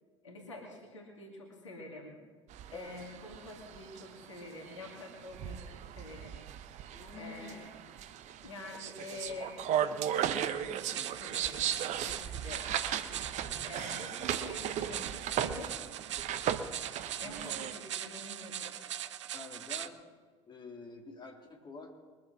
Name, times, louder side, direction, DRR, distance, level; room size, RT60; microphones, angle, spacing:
voice 1, 0.2-2.2 2.7-5.6 6.0-6.5 7.1-7.6 8.4-11.7 12.0-12.6 13.6-15.7 17.2-18.9, left 2 dB, 85° left, 0 dB, 2.3 m, -47 dB
sound 1, 2.5-17.7, right 10 dB, 50° right, 1.0 m, -37 dB
voice 2, 2.7-3.0 6.9-7.7 13.4-13.9 19.3-20.0 20.5-21.9, left 3 dB, 30° left, 1 dB, 3.4 m, -48 dB
sound 2, 10.8-19.9, right 11 dB, 80° right, 0.6 m, -41 dB
22.5 x 7.7 x 5.9 m, 1.5 s
figure-of-eight pair, 65°, 15 cm